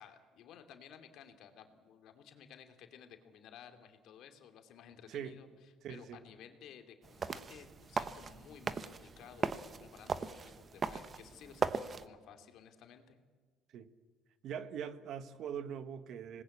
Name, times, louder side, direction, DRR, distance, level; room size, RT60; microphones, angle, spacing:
voice 1, 0.0-13.2, left 8 dB, 55° left, 2.5 m, -56 dB
voice 2, 5.8-6.2 13.7-13.9 14.4-16.4, right 8 dB, 50° right, 1.2 m, -42 dB
sound 1, 7.0-12.1, right 5 dB, 25° right, 0.9 m, -38 dB
26.0 x 19.5 x 8.4 m
cardioid pair, 155°, 0 cm